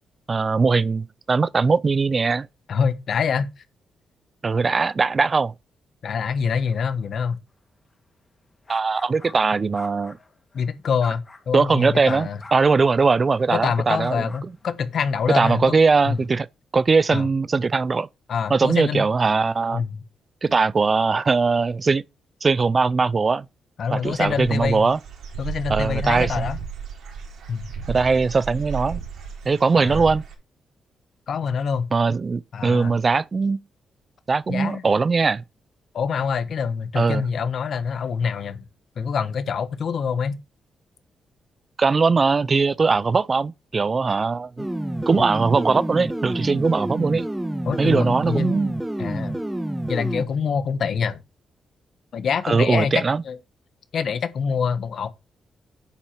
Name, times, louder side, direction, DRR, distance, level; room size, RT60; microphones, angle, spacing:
voice 1, 0.3-2.5 4.4-5.5 8.7-10.2 11.5-14.3 15.3-16.5 16.7-18.1 18.5-19.8 20.4-22.0 22.4-23.5 23.9-25.0 25.7-26.4 27.9-29.0 29.5-30.2 31.9-33.6 34.3-35.4 37.0-37.2 41.8-44.7 45.1-47.3 47.8-48.7 52.4-53.2, right 4 dB, 40° right, 0.4 m, -20 dB
voice 2, 2.7-3.5 6.0-7.4 10.5-12.4 13.5-15.7 16.0-16.2 17.1-17.3 18.3-19.0 19.7-20.0 23.8-24.9 25.4-26.6 27.5-27.7 29.7-30.1 31.3-31.9 32.5-33.0 34.5-34.8 35.9-38.6 39.0-40.4 47.7-48.5 49.0-49.4 49.9-51.2 52.1-53.4 53.9-55.1, left 6 dB, 65° left, 1.2 m, -25 dB
sound 1, 8.7-9.4 9.7-10.7 11.0-11.6 12.0-16.3, left 3 dB, 30° left, 2.7 m, -46 dB
Dog / Bird, 24.1-30.3, right 6 dB, 75° right, 3.4 m, -33 dB
sound 2, 44.6-50.2, right 1 dB, 10° right, 1.3 m, -28 dB
9.9 x 4.3 x 5.9 m
cardioid pair, 70°, 0 cm